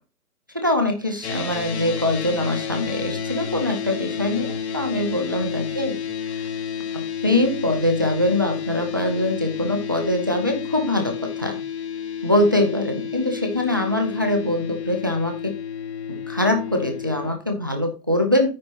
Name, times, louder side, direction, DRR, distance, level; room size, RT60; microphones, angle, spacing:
voice 1, 0.5-5.9 6.9-11.6 12.2-15.6 16.1-18.5, left 1 dB, 15° right, 4 dB, 0.6 m, -23 dB
sound 1, 1.2-17.3, left 7 dB, 45° left, 1.6 m, -31 dB
9.5 x 4.2 x 5.9 m, 0.31 s
hypercardioid pair, 165°, 47 cm